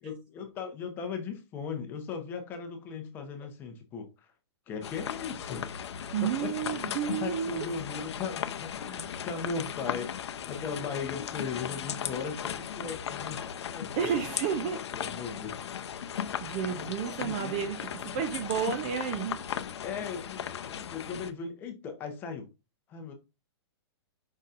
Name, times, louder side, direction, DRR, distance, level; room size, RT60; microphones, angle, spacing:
voice 1, 0.0-4.3 4.7-5.8 6.2-6.9 7.2-13.4 13.8-14.0 14.6-15.6 17.2-17.6 19.8-22.5 22.9-23.1, left 5 dB, 15° left, 0.7 m, -38 dB
sound 1, 4.8-21.3, left 8 dB, 75° left, 0.6 m, -37 dB
voice 2, 6.1-7.7 14.0-14.8 16.4-19.4, right 8 dB, 20° right, 0.3 m, -31 dB
5.4 x 4.0 x 2.4 m
hypercardioid pair, 170°, 14 cm